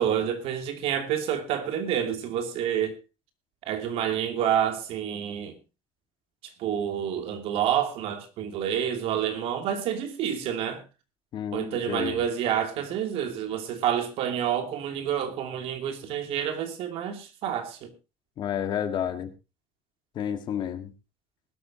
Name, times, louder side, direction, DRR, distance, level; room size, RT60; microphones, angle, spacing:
voice 1, 0.0-3.0 3.7-5.6 6.6-10.8 11.5-17.9, right 9 dB, 70° right, 2.7 m, -28 dB
voice 2, 11.3-12.2 18.4-19.3 20.1-20.9, left 9 dB, 50° left, 1.7 m, -30 dB
20.0 x 12.5 x 2.8 m
cardioid pair, 170°, 10 cm